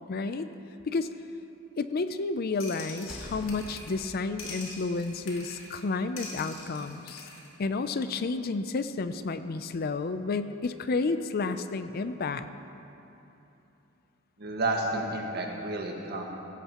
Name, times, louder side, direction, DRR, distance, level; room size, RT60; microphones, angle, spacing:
voice 1, 0.1-0.5 0.8-1.1 1.8-7.3 7.6-12.5, left 3 dB, 45° left, 11 dB, 0.4 m, -31 dB
sound 1, 2.6-4.1 4.4-5.8 6.2-7.5, left 3 dB, 65° left, 2.4 m, -44 dB
sound 2, 2.9-6.7, equal, 5° right, 3.1 m, -48 dB
voice 2, 14.4-16.2, right 2 dB, 50° right, 0 dB, 1.6 m, -31 dB
16.5 x 16.0 x 3.0 m, 2.9 s
head